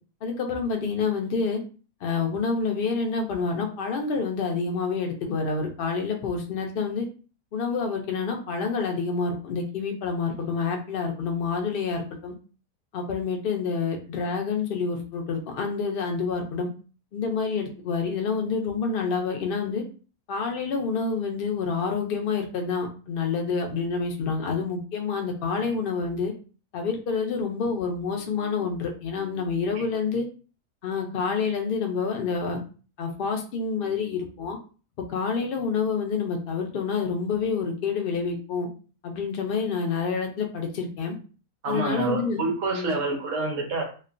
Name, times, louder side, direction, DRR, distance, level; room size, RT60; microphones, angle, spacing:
voice 1, 0.2-1.6 2.0-7.1 7.5-12.3 12.9-16.7 17.1-19.8 20.3-26.3 26.7-30.3 30.8-32.6 33.0-34.6 35.1-38.7 39.0-41.1 41.6-42.4 42.7-42.9, left 5 dB, 70° left, 3 dB, 0.5 m, -28 dB
voice 2, 41.6-43.8, right 3 dB, 60° right, 0 dB, 1.1 m, -27 dB
3.1 x 2.1 x 2.5 m, 0.37 s
omnidirectional pair, 1.6 m